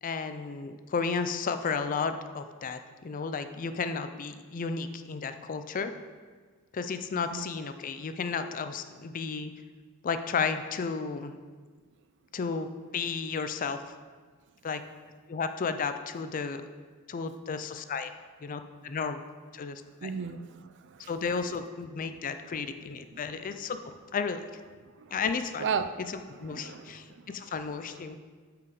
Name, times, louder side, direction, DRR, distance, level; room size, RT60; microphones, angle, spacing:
voice 1, 0.0-5.9 6.7-9.5 10.0-11.4 12.3-13.8 14.6-14.8 15.3-16.6 17.1-18.1 18.4-19.2 19.5-20.1 21.1-23.8 24.1-24.4 25.1-25.7 26.4-28.2, left 5 dB, 40° left, 9 dB, 0.4 m, -33 dB
voice 2, 7.1-7.5 20.0-21.1 22.4-22.7 23.1-23.2 25.0-25.2 25.6-25.9 26.3-27.4 27.9-28.2, right 6 dB, 55° right, 11 dB, 0.4 m, -36 dB
8.5 x 4.8 x 4.8 m, 1.5 s
head